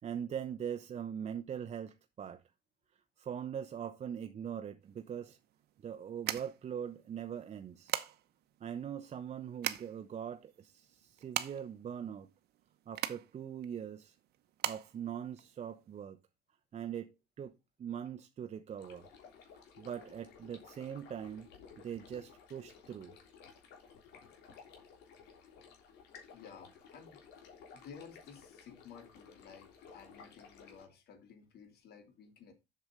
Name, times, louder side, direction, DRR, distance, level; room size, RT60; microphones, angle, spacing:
voice 1, 0.0-2.4 3.2-5.4 5.8-7.9 8.6-12.3 12.9-14.2 14.6-16.2 16.7-17.5 17.8-19.1 19.8-21.5 21.8-23.1, right 8 dB, 40° right, 0.8 m, -42 dB
sound 1, 4.8-16.0, right 13 dB, 70° right, 0.9 m, -41 dB
sound 2, 18.8-30.8, left 6 dB, 85° left, 3.3 m, -56 dB
voice 2, 26.1-27.2 27.7-32.5, left 6 dB, 70° left, 2.9 m, -54 dB
7.9 x 6.8 x 5.0 m
cardioid pair, 110°, 17 cm